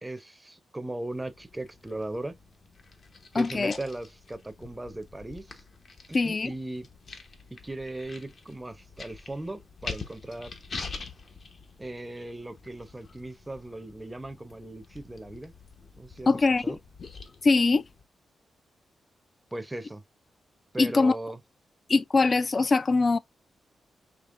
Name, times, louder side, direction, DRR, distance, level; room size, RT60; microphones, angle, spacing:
voice 1, 0.0-2.3 3.3-5.6 6.1-6.9 7.6-10.5 11.8-15.5 16.0-16.8 19.5-20.0 20.7-21.4, right 1 dB, 15° right, 0.6 m, -38 dB
sound 1, 1.1-18.0, left 4 dB, 55° left, 1.0 m, -45 dB
voice 2, 3.3-3.8 6.1-6.5 16.3-16.8 17.4-17.8 20.8-21.2 21.9-23.2, left 3 dB, 40° left, 0.4 m, -22 dB
5.0 x 3.2 x 2.5 m
cardioid pair, 80°, 0 cm